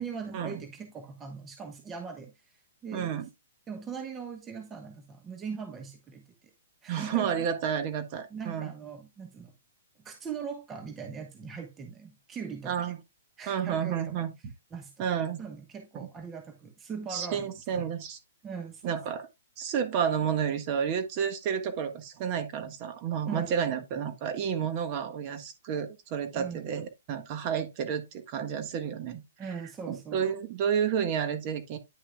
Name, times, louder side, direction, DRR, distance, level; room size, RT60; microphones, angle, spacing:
voice 1, 0.0-3.2 3.7-6.3 6.8-7.3 8.3-9.5 10.0-12.9 13.4-14.3 14.7-15.1 15.4-17.9 18.4-19.0 23.2-23.5 26.3-26.7 29.4-30.3, right 6 dB, 15° right, 1.1 m, -40 dB
voice 2, 2.9-3.2 6.9-8.7 12.6-13.0 13.5-14.3 15.0-15.4 17.1-18.2 18.8-19.3 19.6-29.2 29.9-31.8, right 8 dB, 35° right, 1.4 m, -30 dB
9.7 x 6.0 x 2.2 m
hypercardioid pair, 140°, 0 cm